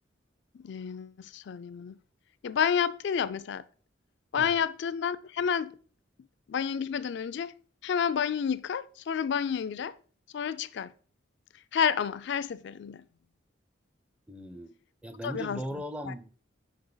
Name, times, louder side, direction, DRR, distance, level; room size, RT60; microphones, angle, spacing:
voice 1, 0.5-2.0 2.4-3.6 4.3-5.8 6.5-7.5 7.8-10.0 10.3-10.9 11.7-13.1 15.2-15.6 16.1-16.2, left 7 dB, 60° left, 0.3 m, -30 dB
voice 2, 14.3-16.3, equal, 5° right, 0.5 m, -39 dB
5.1 x 5.1 x 3.9 m
head